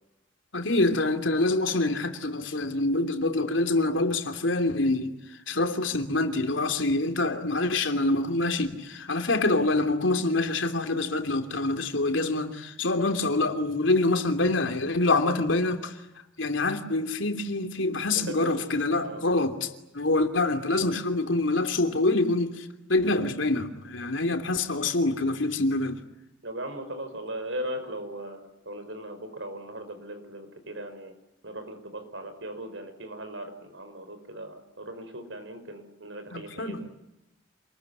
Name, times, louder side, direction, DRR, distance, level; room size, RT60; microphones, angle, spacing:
voice 1, 0.5-5.1 5.5-15.9 16.4-26.0 36.3-36.8, left 2 dB, 80° left, 3.0 m, -26 dB
voice 2, 18.1-18.6 19.0-19.3 26.4-31.1 31.4-36.9, right 1 dB, 75° right, 5.5 m, -38 dB
27.5 x 21.0 x 9.8 m
head